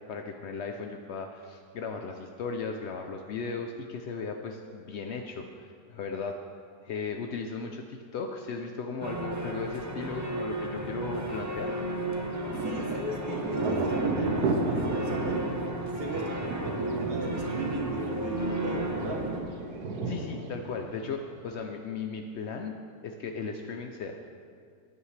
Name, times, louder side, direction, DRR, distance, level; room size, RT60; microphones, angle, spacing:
voice 1, 0.1-6.4 6.8-11.8 20.0-22.8 23.0-24.3, left 4 dB, 75° left, 4 dB, 0.6 m, -36 dB
sound 1, 9.0-19.4, right 1 dB, 15° right, 0.6 m, -34 dB
Thunder, 12.0-21.5, right 3 dB, 70° right, 1.4 m, -34 dB
voice 2, 12.6-15.4 15.8-19.3, right 1 dB, 40° right, 1 dB, 1.3 m, -36 dB
15.5 x 9.9 x 3.3 m, 2.2 s
omnidirectional pair, 1.8 m